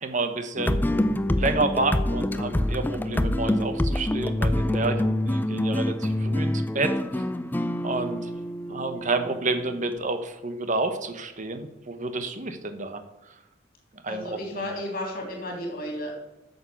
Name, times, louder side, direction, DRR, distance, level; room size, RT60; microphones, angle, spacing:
voice 1, 0.0-0.8 1.3-7.2 7.8-8.3 8.7-13.0 14.0-14.7, right 3 dB, 40° right, 8 dB, 1.0 m, -29 dB
sound 1, 0.6-10.0, left 1 dB, 10° left, 0.4 m, -26 dB
voice 2, 14.1-16.1, left 1 dB, 50° left, 1 dB, 3.2 m, -33 dB
9.4 x 6.6 x 6.9 m, 0.96 s
head